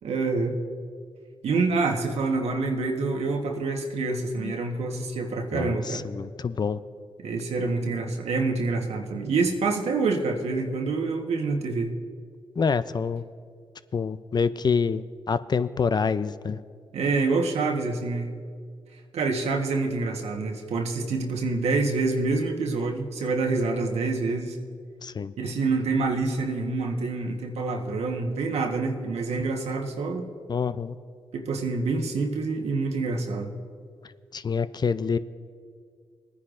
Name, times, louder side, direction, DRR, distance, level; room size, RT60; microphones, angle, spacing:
voice 1, 0.0-0.6 1.4-6.0 7.2-11.9 16.9-18.3 19.1-24.6 25.4-30.3 31.3-33.5, right 3 dB, 75° right, 2 dB, 1.2 m, -27 dB
voice 2, 5.5-6.8 12.6-13.2 13.9-16.6 25.0-25.3 30.5-31.0 34.3-35.2, left 5 dB, 40° left, 14 dB, 0.4 m, -26 dB
20.0 x 9.9 x 2.5 m, 2.1 s
supercardioid pair, 50°, 11 cm